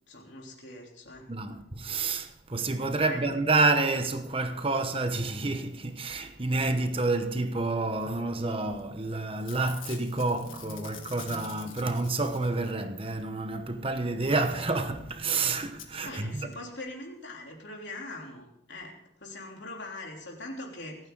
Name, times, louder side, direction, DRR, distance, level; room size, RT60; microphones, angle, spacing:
voice 1, 0.1-1.3 3.1-3.2 16.0-18.9 19.2-21.0, left 2 dB, 60° left, 3.5 m, -42 dB
voice 2, 1.3-16.5, right 3 dB, 30° right, 1.0 m, -29 dB
Packing tape duct tape / Tearing, 8.8-9.0 9.3-12.9 14.8-14.9 15.1-15.2 15.8-15.9 16.5-16.6 16.8-16.9, left 8 dB, 85° left, 1.8 m, -47 dB
26.0 x 9.3 x 4.0 m
head